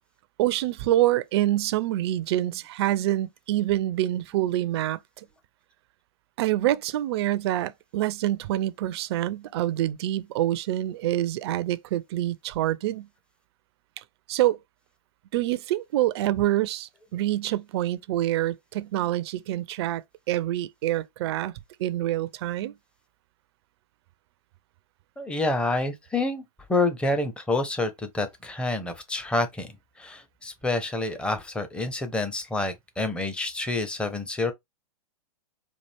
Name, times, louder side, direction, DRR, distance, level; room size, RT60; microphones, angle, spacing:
voice 1, 0.4-5.0 6.4-13.1 14.0-14.6 15.3-20.0 20.3-21.5 21.8-22.7, right 14 dB, 45° right, 0.4 m, -26 dB
voice 2, 25.2-26.4 26.7-34.5, left 2 dB, 5° left, 0.6 m, -28 dB
4.3 x 2.5 x 3.2 m
hypercardioid pair, 115°, 20 cm